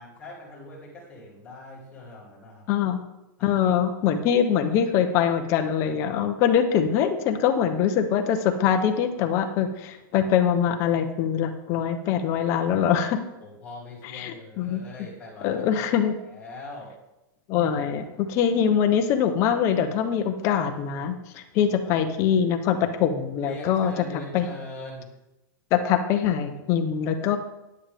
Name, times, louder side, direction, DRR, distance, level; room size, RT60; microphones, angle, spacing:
voice 1, 0.0-2.6 3.4-3.6 13.4-16.9 21.8-22.4 23.4-25.1, left 2 dB, 10° left, -6 dB, 2.8 m, -42 dB
voice 2, 2.7-3.0 3.4-13.2 14.1-14.8 15.4-16.2 17.5-23.9 24.3-24.5 25.7-27.4, left 8 dB, 25° left, 6 dB, 0.8 m, -23 dB
10.0 x 9.6 x 3.5 m, 0.96 s
supercardioid pair, 170°, 11 cm